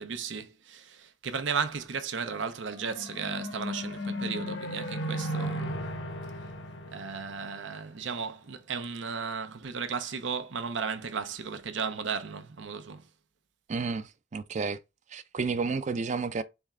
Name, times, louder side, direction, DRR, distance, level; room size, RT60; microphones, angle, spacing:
voice 1, 0.0-5.8 6.9-13.0, right 6 dB, 85° right, 0.7 m, -35 dB
sound 1, 2.5-8.0, equal, 85° left, 1.1 m, -36 dB
voice 2, 13.7-14.8 15.1-16.4, right 4 dB, 40° right, 0.4 m, -31 dB
4.2 x 3.5 x 3.6 m
head